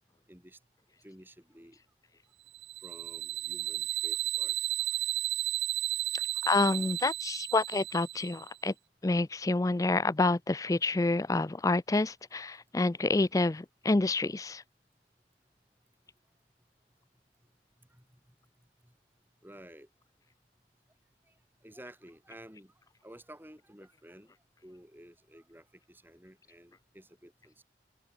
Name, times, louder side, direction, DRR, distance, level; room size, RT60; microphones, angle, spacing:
voice 1, 0.3-0.6 1.0-1.8 2.8-4.5 13.2-13.5 17.9-18.0 19.4-19.9 21.6-22.7 23.0-24.3 24.6-27.6, right 1 dB, 10° right, 5.6 m, -53 dB
sound 1, 2.5-8.5, right 15 dB, 75° right, 1.4 m, -33 dB
voice 2, 6.4-8.7 9.0-14.6, left 2 dB, 20° left, 0.4 m, -28 dB
open air
head